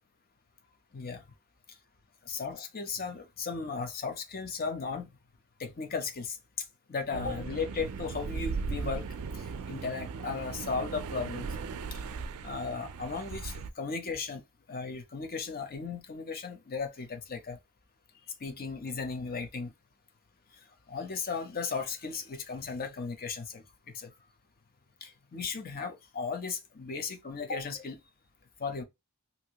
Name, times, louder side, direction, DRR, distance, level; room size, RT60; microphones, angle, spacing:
voice 1, 2.3-5.1 5.6-6.4 6.9-9.1 9.3-11.5 11.9-12.0 12.4-14.4 14.7-17.6 18.4-19.7 20.9-23.6 23.9-24.1 25.0-28.0 28.6-28.8, left 4 dB, 40° left, 0.7 m, -36 dB
sound 1, 7.1-13.7, right 5 dB, 75° right, 0.4 m, -38 dB
2.8 x 2.5 x 2.8 m
head